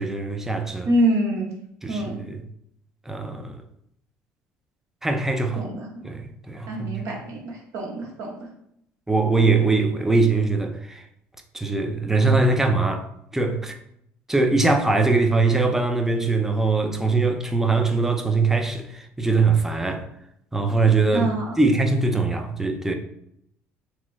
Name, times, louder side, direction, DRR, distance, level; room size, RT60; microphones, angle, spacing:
voice 1, 0.0-0.9 1.8-2.4 3.1-3.6 5.0-5.6 6.0-7.1 9.1-11.1 11.5-13.7 14.3-20.1 20.5-21.3 21.6-22.9, right 3 dB, 10° right, 0.4 m, -22 dB
voice 2, 0.9-1.5 1.9-2.2 5.5-6.0 6.7-8.3 21.1-21.5, right 1 dB, 65° right, 1.0 m, -25 dB
3.0 x 2.1 x 3.4 m
cardioid pair, 95°, 5 cm